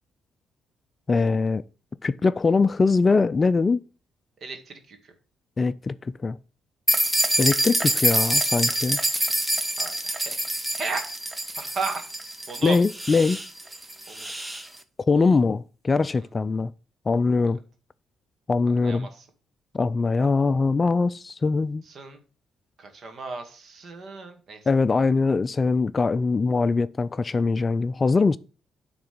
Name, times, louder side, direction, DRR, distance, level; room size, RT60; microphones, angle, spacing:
voice 1, 1.1-1.6 2.0-3.8 5.6-6.4 7.4-9.0 12.6-13.4 15.1-16.7 17.1-17.6 18.5-19.1 19.7-21.8 24.7-28.4, left 4 dB, 30° left, 0.4 m, -22 dB
voice 2, 4.4-5.0 9.8-11.1 11.6-12.0 12.5-12.8 14.1-14.3 18.8-19.1 22.0-22.2 22.8-24.6, right 4 dB, 50° right, 2.0 m, -34 dB
sound 1, 6.9-14.7, right 1 dB, 10° right, 1.0 m, -26 dB
9.5 x 3.9 x 6.7 m
cardioid pair, 90°, 0 cm